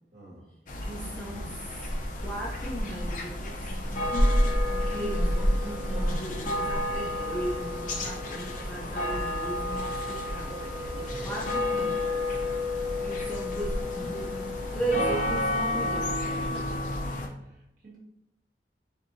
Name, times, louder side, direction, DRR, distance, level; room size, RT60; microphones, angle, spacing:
voice 1, 0.1-0.5 10.9-11.3 16.4-17.0 17.4-18.0, equal, 50° right, -6 dB, 1.6 m, -47 dB
sound 1, 0.7-17.3, left 1 dB, 45° left, 0.6 m, -29 dB
voice 2, 0.8-1.8 2.2-3.7 4.9-10.6 11.2-12.2 13.0-14.3 14.7-16.1, right 1 dB, 5° left, -4 dB, 0.6 m, -36 dB
sound 2, 0.9-16.8, right 3 dB, 75° right, 0.8 m, -48 dB
4.5 x 3.5 x 2.7 m, 0.80 s
head